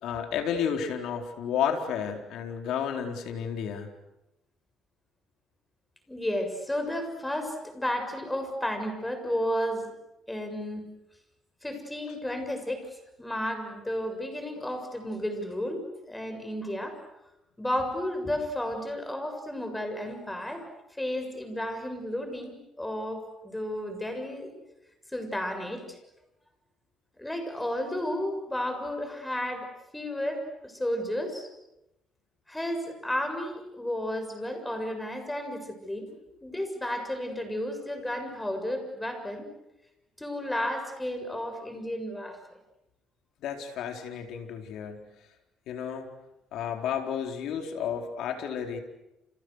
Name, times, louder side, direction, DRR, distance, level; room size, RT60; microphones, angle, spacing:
voice 1, 0.0-3.9 43.4-45.0 45.7-46.1 46.5-48.8, left 8 dB, 75° left, 4 dB, 4.3 m, -32 dB
voice 2, 6.1-9.9 10.3-10.9 11.6-12.9 13.2-17.0 17.6-20.7 21.0-24.5 25.1-26.0 27.2-29.7 29.9-31.5 32.5-36.1 36.4-39.5 40.2-42.4, left 1 dB, 10° left, 6 dB, 7.2 m, -32 dB
30.0 x 30.0 x 6.6 m, 0.88 s
cardioid pair, 100°, 0 cm